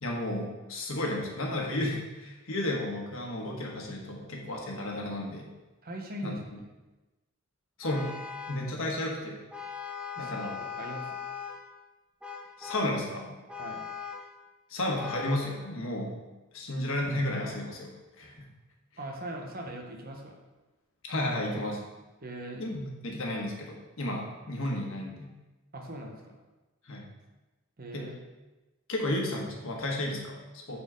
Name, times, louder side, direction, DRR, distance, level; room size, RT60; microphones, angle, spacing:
voice 1, 0.0-5.5 6.2-6.4 7.8-8.1 8.5-9.4 10.2-10.6 12.6-13.4 14.7-16.2 16.5-18.5 21.1-21.8 22.6-25.3 26.9-27.1 27.9-28.1 28.9-30.8, left 1 dB, 75° left, 0 dB, 1.4 m, -33 dB
voice 2, 5.8-6.4 10.2-11.1 13.6-13.9 19.0-20.4 22.2-22.7 25.7-26.4 27.8-28.2, right 1 dB, 45° right, 1 dB, 1.1 m, -40 dB
Vehicle horn car horn honking, 7.8-8.7 9.5-11.7 12.2-13.0 13.5-14.3 14.9-15.6, left 6 dB, 5° right, 0.6 m, -40 dB
8.9 x 4.3 x 3.9 m, 1.1 s
head